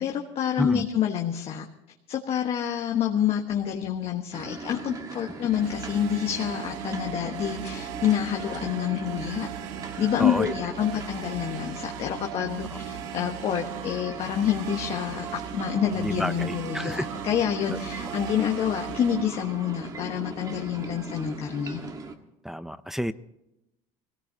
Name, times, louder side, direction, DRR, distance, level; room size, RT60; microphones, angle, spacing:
voice 1, 0.0-1.6 2.1-9.5 10.0-21.8, left 9 dB, 40° left, 2 dB, 1.4 m, -28 dB
sound 1, 4.3-22.1, right 3 dB, 25° right, 1.5 m, -40 dB
sound 2, 5.5-19.3, right 11 dB, 85° right, 0.9 m, -38 dB
voice 2, 10.2-10.5 15.9-17.1 17.7-17.8 22.4-23.1, equal, ahead, 11 dB, 0.5 m, -30 dB
23.0 x 17.5 x 2.8 m, 0.89 s
cardioid pair, 130°, 15 cm